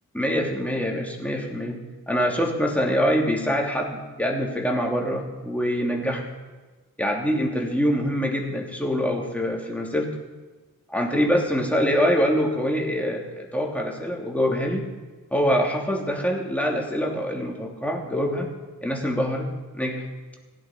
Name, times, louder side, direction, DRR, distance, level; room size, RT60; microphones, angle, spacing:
voice 1, 0.1-1.8 2.1-6.2 7.0-10.1 10.9-14.8 15.3-18.5 18.8-19.5 19.8-20.0, equal, 5° left, -1 dB, 3.2 m, -24 dB
16.0 x 10.5 x 5.0 m, 1.3 s
cardioid pair, 50°, 34 cm